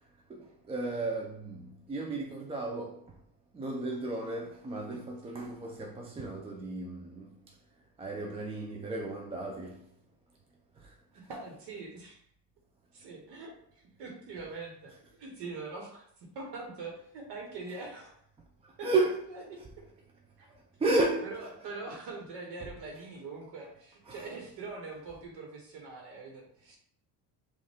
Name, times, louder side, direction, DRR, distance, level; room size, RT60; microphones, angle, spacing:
voice 1, 0.3-3.0 3.5-7.4 8.0-9.8 10.8-10.9 18.8-19.3 20.8-21.4 22.6-22.7 24.1-24.3, right 2 dB, 15° right, 0.3 m, -33 dB
voice 2, 11.1-12.2 12.9-18.2 18.8-18.9 19.3-19.4 20.4-20.6 21.2-26.8, right 3 dB, 65° right, 1.2 m, -43 dB
5.3 x 2.5 x 3.4 m
cardioid pair, 125°, 44 cm